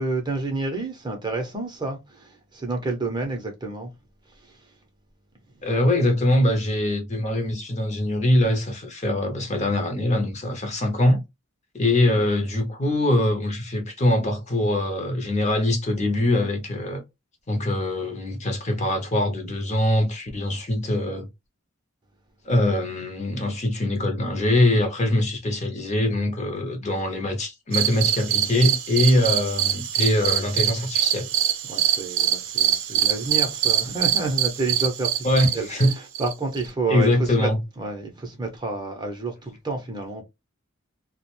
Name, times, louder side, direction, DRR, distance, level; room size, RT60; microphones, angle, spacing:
voice 1, 0.0-3.9 4.3-4.7 31.6-35.3 35.5-35.8 36.2-37.5 37.8-40.2, right 3 dB, 20° right, 0.6 m, -29 dB
voice 2, 5.6-11.2 11.7-17.0 17.5-21.3 22.4-31.3 32.9-33.0 35.2-35.9 36.9-37.6, left 1 dB, 30° left, 0.6 m, -23 dB
sound 1, 27.7-36.7, right 10 dB, 65° right, 0.5 m, -24 dB
2.3 x 2.1 x 2.9 m
head